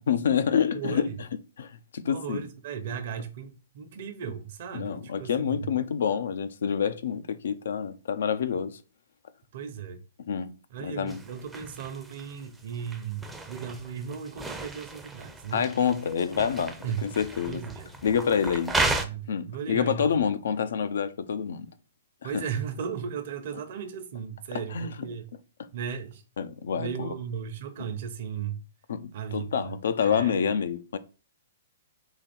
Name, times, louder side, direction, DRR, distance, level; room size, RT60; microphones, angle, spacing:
voice 1, 0.1-1.1 1.6-2.4 4.7-8.8 10.3-10.5 10.8-11.2 15.5-16.8 17.0-17.6 18.0-18.8 19.3-21.7 22.3-22.4 24.7-24.9 26.4-27.1 28.9-31.0, left 7 dB, 75° left, 0.5 m, -27 dB
voice 2, 0.7-1.3 2.0-5.7 9.5-10.0 10.7-15.6 16.8-17.1 17.5-18.0 18.7-20.2 22.2-25.3 25.7-26.2 26.8-28.7 29.1-30.5, right 7 dB, 55° right, 0.8 m, -36 dB
sound 1, 11.1-19.1, right 2 dB, 10° right, 0.6 m, -35 dB
4.0 x 2.9 x 4.3 m
hypercardioid pair, 135°, 0 cm